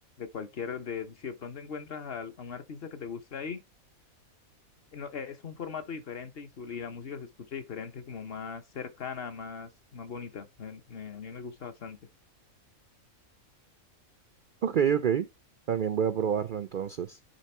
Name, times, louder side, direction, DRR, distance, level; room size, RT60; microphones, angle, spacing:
voice 1, 0.2-3.6 4.9-12.0, left 6 dB, 50° left, 0.8 m, -39 dB
voice 2, 14.6-15.3 15.7-17.2, right 8 dB, 90° right, 0.4 m, -27 dB
9.5 x 3.5 x 4.3 m
omnidirectional pair, 1.5 m